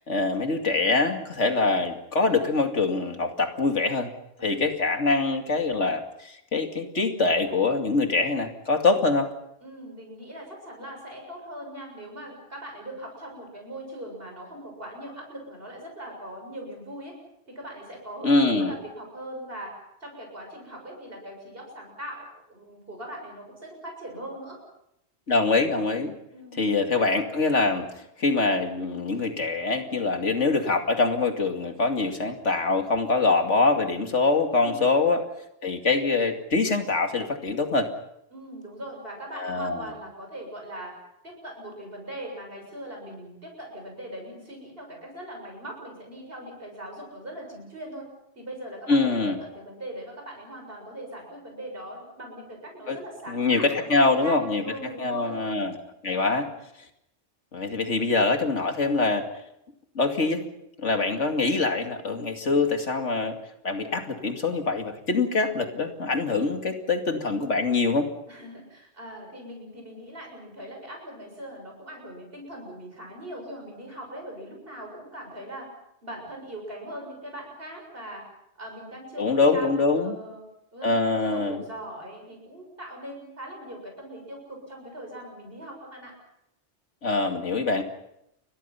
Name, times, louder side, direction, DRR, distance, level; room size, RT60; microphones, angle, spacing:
voice 1, 0.0-4.1 4.4-9.3 18.2-18.7 25.3-26.1 26.5-27.9 28.2-35.2 35.6-37.9 39.3-39.9 48.9-49.4 52.9-53.0 53.3-54.6 55.0-55.7 56.0-56.5 57.5-59.2 59.9-60.4 60.8-63.3 63.6-68.1 79.2-80.1 80.8-81.6 87.0-87.8, left 3 dB, 90° left, 5 dB, 2.7 m, -24 dB
voice 2, 9.6-17.1 17.5-19.7 20.0-24.6 26.3-26.6 34.6-34.8 38.3-40.9 41.2-48.1 48.4-49.2 49.5-55.4 56.1-56.5 57.7-58.0 68.3-75.7 76.0-78.3 78.6-80.4 80.7-86.1, right 1 dB, 55° right, 1 dB, 7.4 m, -40 dB
29.0 x 23.0 x 5.7 m, 0.79 s
omnidirectional pair, 1.2 m